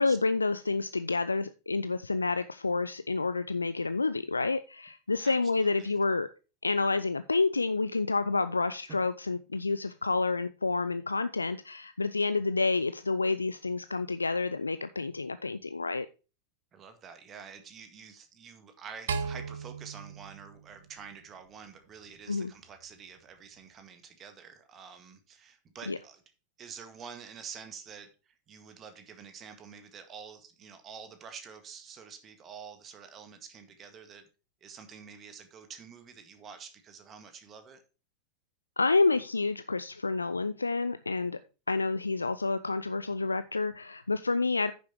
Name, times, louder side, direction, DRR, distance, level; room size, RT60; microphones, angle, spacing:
voice 1, 0.0-6.3 6.6-16.1 22.3-22.5 25.9-26.0 38.8-41.4 41.7-44.7, left 3 dB, 80° left, 0.4 m, -29 dB
voice 2, 5.2-5.9 8.9-9.0 16.7-26.2 26.6-34.3 34.6-37.8, right 6 dB, 25° right, 1.8 m, -48 dB
sound 1, 19.1-21.5, right 5 dB, 65° right, 1.0 m, -37 dB
9.6 x 6.9 x 4.5 m
figure-of-eight pair, 90°, 0 cm